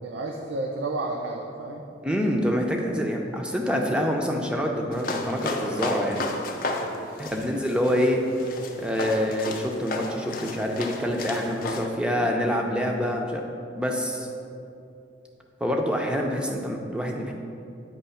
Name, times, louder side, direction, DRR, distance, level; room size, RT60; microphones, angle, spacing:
voice 1, 0.0-1.8 6.7-7.1, right 2 dB, 70° right, 1 dB, 0.5 m, -32 dB
voice 2, 2.0-6.2 7.2-8.2 8.8-13.4 13.8-14.3 15.6-17.3, equal, 5° right, 1 dB, 0.5 m, -26 dB
sound 1, 4.9-11.8, left 2 dB, 45° left, 0.5 m, -33 dB
9.1 x 3.0 x 5.6 m, 2.6 s
head